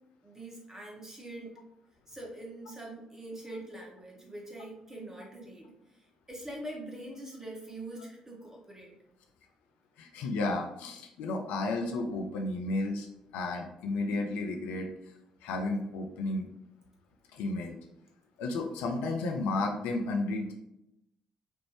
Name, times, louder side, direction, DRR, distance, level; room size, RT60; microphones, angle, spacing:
voice 1, 0.2-1.6 2.1-9.0, right 1 dB, 15° right, -2 dB, 1.3 m, -44 dB
voice 2, 10.0-13.1 13.3-15.1 15.4-16.5 17.3-17.8 18.4-20.5, left 2 dB, 65° left, 3 dB, 0.4 m, -32 dB
4.4 x 2.6 x 3.1 m, 0.85 s
figure-of-eight pair, 45°, 3 cm